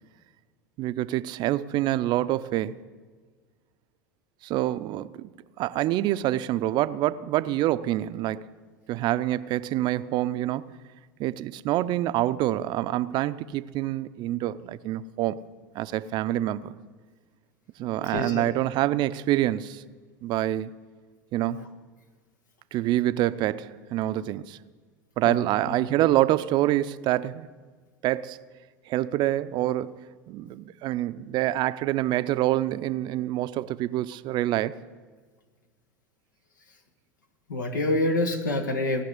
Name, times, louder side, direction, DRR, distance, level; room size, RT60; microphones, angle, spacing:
voice 1, 0.8-2.8 4.4-5.3 5.6-8.5 8.9-10.7 11.2-15.4 15.7-16.8 17.8-19.8 20.2-20.7 21.3-21.6 22.7-24.6 25.2-27.5 28.0-28.4 28.9-34.8, right 14 dB, 50° right, 0.5 m, -26 dB
voice 2, 18.1-18.4 25.2-25.3 37.5-39.0, left 1 dB, 85° left, 1.7 m, -26 dB
18.0 x 6.0 x 9.7 m
hypercardioid pair, 85°, 10 cm